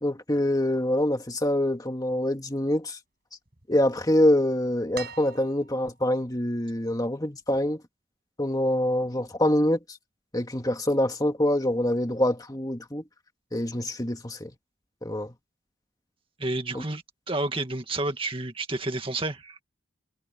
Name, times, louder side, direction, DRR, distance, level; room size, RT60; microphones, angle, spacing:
voice 1, 0.0-3.0 3.7-7.8 8.4-9.8 10.3-13.0 13.5-14.5 15.0-15.3 16.7-16.8, left 1 dB, 20° left, 1.9 m, -25 dB
sound 1, 4.9-6.0 7.5-7.6, right 7 dB, 50° right, 6.6 m, -42 dB
voice 2, 16.4-19.6, right 2 dB, 25° right, 2.1 m, -30 dB
head